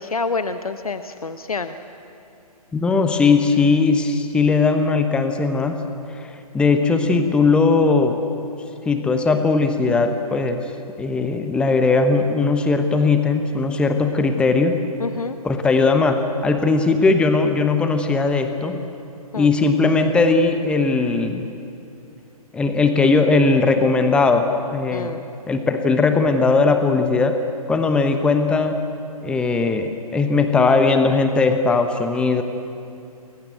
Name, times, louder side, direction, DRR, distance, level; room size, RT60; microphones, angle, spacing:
voice 1, 0.0-1.8 15.0-15.4 19.3-19.5 24.9-25.2, left 4 dB, 70° left, 10 dB, 1.1 m, -27 dB
voice 2, 2.7-5.8 6.1-6.3 6.5-8.2 8.9-10.7 11.0-14.8 15.4-18.8 19.3-21.5 22.5-25.1 25.5-27.4 27.7-28.8 29.2-32.4, left 4 dB, 5° left, 7 dB, 1.0 m, -18 dB
29.0 x 22.0 x 7.9 m, 2.7 s
figure-of-eight pair, 130°, 19 cm